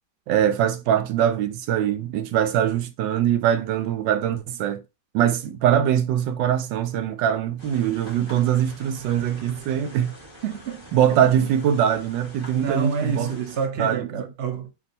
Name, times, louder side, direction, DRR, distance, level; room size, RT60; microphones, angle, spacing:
voice 1, 0.3-4.8 5.1-10.1 10.9-13.3 13.8-14.2, right 10 dB, 85° right, 1.2 m, -22 dB
sound 1, 7.6-13.7, equal, 20° right, 1.0 m, -45 dB
voice 2, 10.4-11.0 12.5-14.7, right 5 dB, 50° right, 0.8 m, -28 dB
3.5 x 2.6 x 3.9 m
omnidirectional pair, 2.0 m